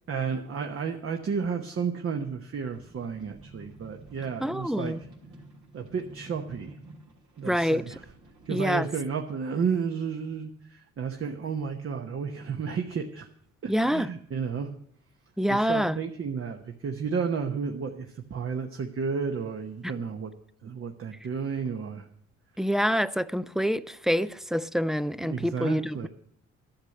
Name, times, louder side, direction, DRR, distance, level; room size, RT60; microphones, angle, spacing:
voice 1, 0.1-4.9 5.7-6.8 7.4-8.0 8.5-13.3 13.6-14.7 15.5-20.3 20.6-22.1 25.2-26.1, right 6 dB, 45° right, 1.1 m, -32 dB
sound 1, 2.7-8.5, right 2 dB, 75° right, 3.1 m, -50 dB
voice 2, 4.4-5.0 7.4-7.9 8.5-8.9 13.7-14.1 15.4-16.0 22.6-26.1, equal, ahead, 0.4 m, -26 dB
12.0 x 6.5 x 9.0 m
cardioid pair, 90°, 30 cm